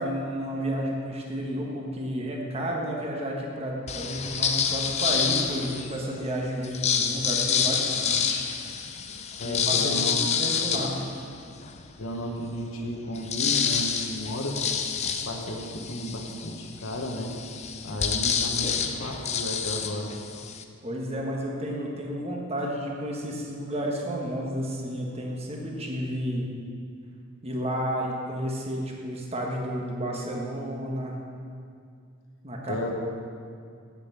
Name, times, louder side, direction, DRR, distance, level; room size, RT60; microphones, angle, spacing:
voice 1, 0.0-8.5 9.4-11.0 20.8-26.4 27.4-31.2 32.4-32.9, equal, 30° right, -1 dB, 1.3 m, -31 dB
sound 1, 3.9-6.0 6.6-11.8 12.3-12.4 12.6-20.6, left 7 dB, 30° left, 0.5 m, -28 dB
voice 2, 9.4-10.2 10.5-10.9 12.0-14.6 15.0-17.3 17.8-20.1 32.7-32.9, equal, 70° left, 1 dB, 1.1 m, -33 dB
7.8 x 6.9 x 8.1 m, 2.3 s
head